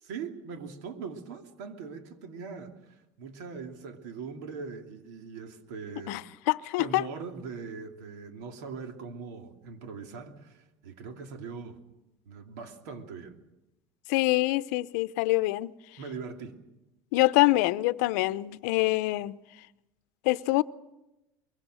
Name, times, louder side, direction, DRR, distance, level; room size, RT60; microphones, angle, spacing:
voice 1, 0.0-6.2 6.8-11.8 12.2-13.4 16.0-16.6, right 5 dB, 85° right, 2.8 m, -41 dB
voice 2, 6.5-7.0 14.1-15.7 17.1-19.4 20.2-20.6, left 20 dB, 80° left, 0.7 m, -25 dB
23.5 x 23.0 x 6.3 m
cardioid pair, 155°, 9 cm